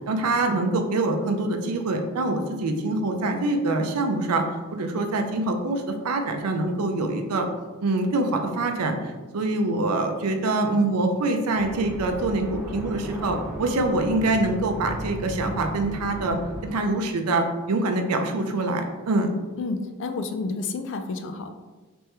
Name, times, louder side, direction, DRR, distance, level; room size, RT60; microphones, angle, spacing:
voice 1, 0.1-4.4 4.7-7.5 7.8-19.3, right 2 dB, 90° right, 5 dB, 0.5 m, -25 dB
sound 1, 11.5-16.7, equal, 5° right, 0.5 m, -36 dB
voice 2, 19.6-21.6, left 3 dB, 55° left, 7 dB, 0.4 m, -30 dB
3.4 x 3.0 x 3.2 m, 1.3 s
head